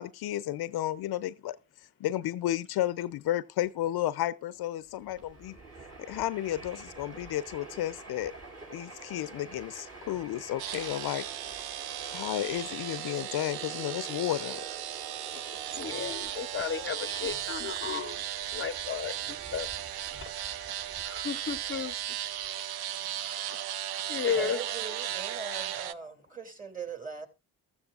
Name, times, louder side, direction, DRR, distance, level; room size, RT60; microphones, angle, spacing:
voice 1, 0.0-5.6 6.1-8.3 8.7-11.2 12.1-14.6, left 13 dB, 65° left, 0.7 m, -32 dB
Train, 4.9-22.5, right 2 dB, 40° right, 4.9 m, -49 dB
sound 1, 10.6-25.9, right 12 dB, 65° right, 0.7 m, -36 dB
voice 2, 15.7-18.2 18.5-19.7 20.1-20.8 21.0-21.9 23.2-23.5 24.1-24.6, left 7 dB, 30° left, 0.8 m, -34 dB
voice 3, 24.4-27.3, right 5 dB, 20° right, 2.9 m, -40 dB
14.5 x 13.5 x 2.5 m
supercardioid pair, 65°, 40 cm